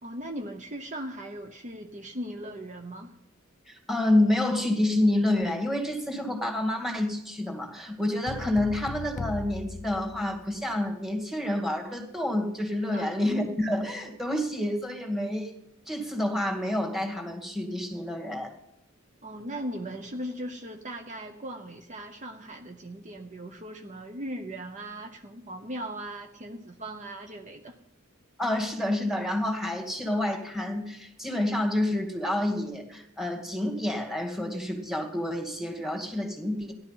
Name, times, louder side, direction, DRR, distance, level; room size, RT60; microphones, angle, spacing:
voice 1, 0.0-3.1 12.9-13.3 19.2-27.7, right 1 dB, 35° right, 5 dB, 0.9 m, -38 dB
voice 2, 3.7-15.5 15.9-18.5 28.4-36.7, left 1 dB, ahead, 3 dB, 2.1 m, -28 dB
sound 1, 8.3-10.8, left 3 dB, 35° left, 0.5 m, -38 dB
16.0 x 11.5 x 5.6 m, 0.84 s
head